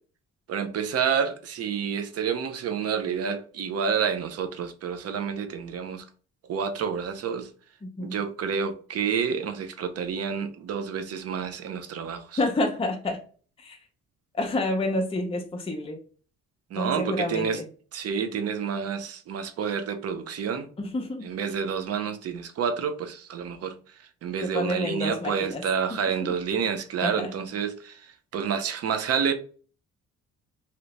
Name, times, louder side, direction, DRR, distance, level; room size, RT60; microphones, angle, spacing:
voice 1, 0.5-6.0 6.5-7.5 8.0-12.4 16.7-17.6 17.9-20.7 21.2-23.8 24.2-29.3, right 7 dB, 55° right, 0.6 m, -29 dB
voice 2, 7.8-8.2 12.4-13.2 13.6-13.8 14.3-16.0 16.7-17.6 20.8-21.3 24.4-25.6 25.9-26.3 27.0-27.3, left 2 dB, 20° left, 0.6 m, -29 dB
2.8 x 2.6 x 3.2 m
cardioid pair, 90°, 30 cm